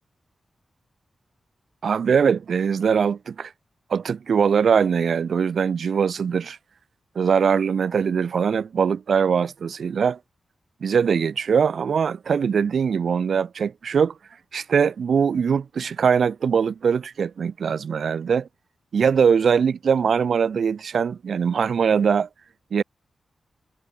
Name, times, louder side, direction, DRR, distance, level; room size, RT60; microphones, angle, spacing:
voice 1, 1.8-3.5 3.9-6.6 7.1-10.2 10.8-14.1 14.5-18.5 18.9-22.3 22.7-22.8, right 6 dB, 70° right, 1.3 m, -21 dB
wide cardioid pair, 110°, 0 cm